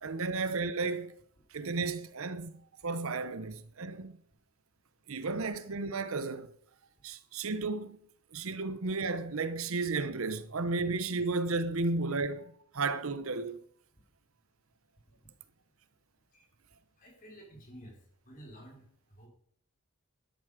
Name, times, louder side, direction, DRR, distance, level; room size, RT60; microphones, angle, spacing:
voice 1, 0.0-1.1 1.5-4.2 5.1-6.5 7.0-8.0 8.3-13.6, right 3 dB, 70° right, 0.8 m, -33 dB
voice 2, 17.0-18.0 18.2-18.9 19.2-19.3, equal, 40° left, 4.4 m, -51 dB
12.5 x 11.0 x 5.0 m
head